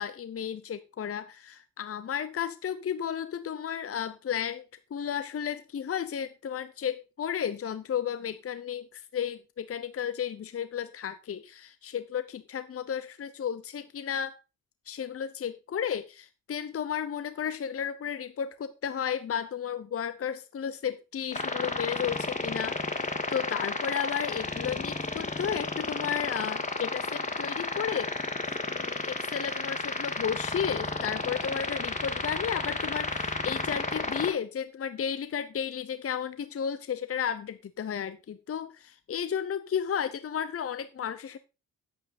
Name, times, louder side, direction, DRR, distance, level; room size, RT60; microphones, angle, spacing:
voice 1, 0.0-4.7 4.9-14.3 14.9-28.1 28.7-41.4, left 8 dB, 40° left, 0.8 m, -33 dB
sound 1, 21.3-34.3, left 3 dB, 20° left, 1.8 m, -32 dB
9.3 x 8.0 x 4.3 m
cardioid pair, 90°, 34 cm